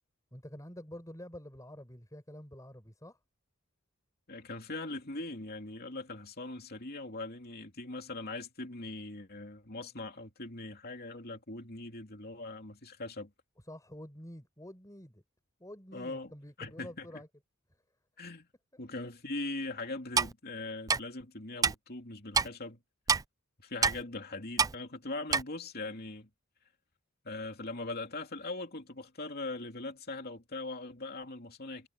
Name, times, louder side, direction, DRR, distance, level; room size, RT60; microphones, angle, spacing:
voice 1, 0.3-3.2 13.6-15.2 15.6-17.3, left 1 dB, 15° left, 5.2 m, -48 dB
voice 2, 4.3-13.3 15.9-16.3 16.6-17.1 18.2-18.5 18.8-22.8 23.6-26.3 27.2-31.9, left 2 dB, 45° left, 3.0 m, -41 dB
Clock, 20.2-20.3 20.9-21.0 21.6-21.7 22.3-22.5 23.1-23.2 23.8-24.0 24.6-24.7 25.3-25.4, right 5 dB, 15° right, 0.3 m, -26 dB
head